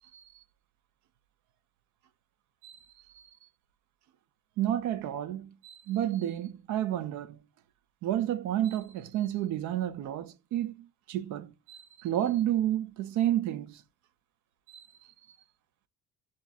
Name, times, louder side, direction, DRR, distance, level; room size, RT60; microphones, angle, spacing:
voice 1, 4.6-7.4 8.0-13.8 14.7-14.8, right 12 dB, 65° right, 0.7 m, -31 dB
7.3 x 2.5 x 2.4 m
cardioid pair, 150°, 32 cm